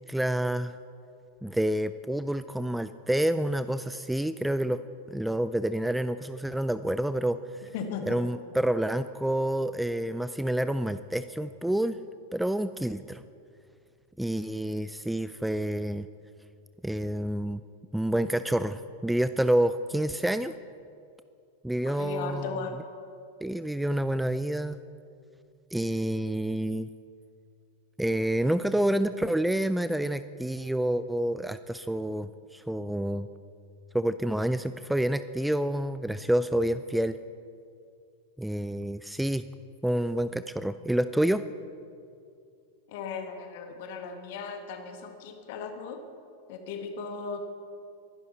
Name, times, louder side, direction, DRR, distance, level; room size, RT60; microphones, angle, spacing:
voice 1, 0.1-0.8 1.4-4.8 5.1-7.7 8.1-12.0 12.3-13.2 14.2-16.1 16.8-17.6 17.9-20.5 21.6-22.6 23.4-24.8 25.7-26.9 28.0-33.3 33.9-37.2 38.4-39.4 39.8-41.4, right 1 dB, 5° right, 13 dB, 0.4 m, -28 dB
voice 2, 7.7-8.2 21.9-22.8 42.9-46.0 46.5-47.5, left 5 dB, 50° left, 5 dB, 1.8 m, -37 dB
23.0 x 11.5 x 4.2 m, 2.4 s
figure-of-eight pair, 90°, 0 cm